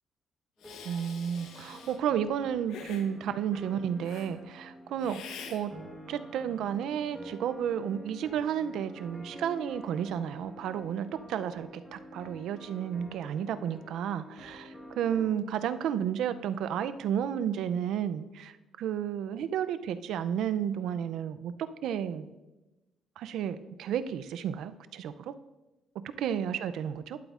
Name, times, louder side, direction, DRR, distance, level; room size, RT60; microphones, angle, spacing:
Hiss, 0.6-2.0 2.7-3.1 4.0-4.3 5.0-5.6, left 6 dB, 80° left, 0.8 m, -45 dB
sound 1, 0.6-15.4, right 1 dB, 5° left, 1.0 m, -48 dB
voice 1, 0.8-5.2 5.5-5.7 6.1-21.5 21.8-22.3 23.2-25.3 26.2-27.2, right 9 dB, 70° right, 12 dB, 0.4 m, -32 dB
11.5 x 7.9 x 2.4 m, 1.1 s
cardioid pair, 170°, 0 cm